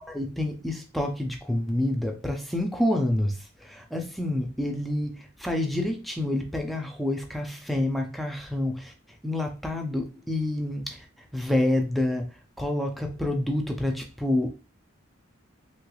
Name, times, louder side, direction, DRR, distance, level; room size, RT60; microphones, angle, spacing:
voice 1, 0.0-8.9 9.2-11.1 11.3-14.5, left 1 dB, ahead, 0.4 m, -28 dB
3.3 x 3.2 x 2.3 m
head